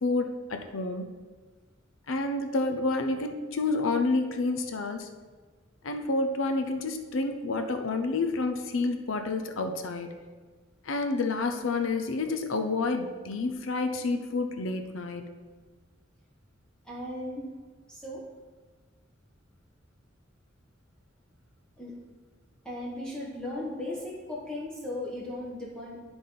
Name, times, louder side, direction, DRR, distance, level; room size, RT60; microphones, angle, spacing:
voice 1, 0.0-1.1 2.1-5.1 5.8-10.1 10.8-15.2, left 3 dB, 80° left, 6 dB, 0.6 m, -29 dB
voice 2, 16.8-17.5 17.9-18.2 21.8-22.0 22.6-26.0, left 1 dB, 5° left, -6 dB, 1.1 m, -36 dB
11.5 x 4.0 x 3.8 m, 1.4 s
head